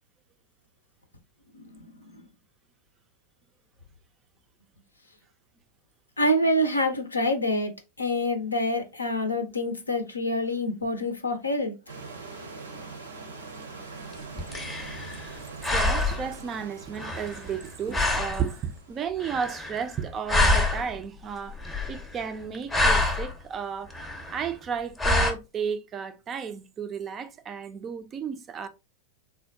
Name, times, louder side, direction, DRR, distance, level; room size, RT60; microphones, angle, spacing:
voice 1, 1.5-1.9 6.2-7.7 8.0-11.7, left 1 dB, 80° left, 0.5 m, -26 dB
sound 1, 11.9-19.0, right 4 dB, 80° right, 0.7 m, -43 dB
sound 2, 14.1-15.4 15.6-16.4 17.0-17.6 17.9-18.5 19.2-20.0 20.3-21.0 21.5-22.2 22.5-23.3 23.9-24.5 25.0-25.3, left 2 dB, 10° left, 0.6 m, -26 dB
voice 2, 15.7-21.6 21.9-23.9 24.3-28.7, right 7 dB, 25° right, 0.3 m, -33 dB
3.5 x 2.2 x 2.6 m
figure-of-eight pair, 90°, 0 cm